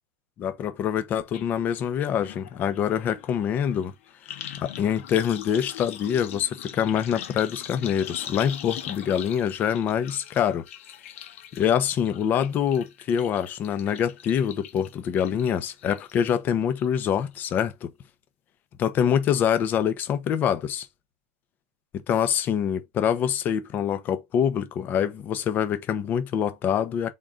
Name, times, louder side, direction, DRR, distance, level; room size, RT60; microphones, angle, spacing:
voice 1, 0.4-3.9 4.6-10.6 11.5-17.9 18.8-20.9 22.1-27.1, left 8 dB, 25° left, 0.6 m, -25 dB
sound 1, 1.3-1.4 1.7-16.4 16.8-17.2 17.5-17.6, left 10 dB, 65° left, 1.1 m, -42 dB
3.7 x 3.7 x 3.8 m
supercardioid pair, 150°, 8 cm